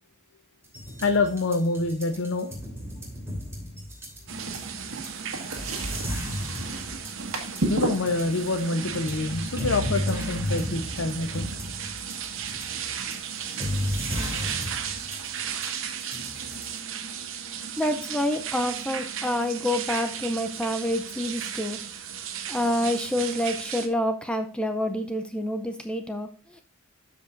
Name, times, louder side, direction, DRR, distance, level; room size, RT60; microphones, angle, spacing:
sound 1, 0.6-16.8, equal, 10° right, 3.1 m, -34 dB
voice 1, 1.0-2.5 7.7-11.5 12.9-13.0, left 3 dB, 65° left, 6 dB, 0.7 m, -26 dB
sound 2, 4.3-23.9, right 8 dB, 65° right, 0.9 m, -35 dB
sound 3, 4.3-10.5, right 2 dB, 85° right, 1.6 m, -34 dB
voice 2, 17.8-21.8 22.5-26.6, left 1 dB, 5° left, 6 dB, 0.5 m, -28 dB
12.5 x 5.2 x 2.5 m, 0.40 s
head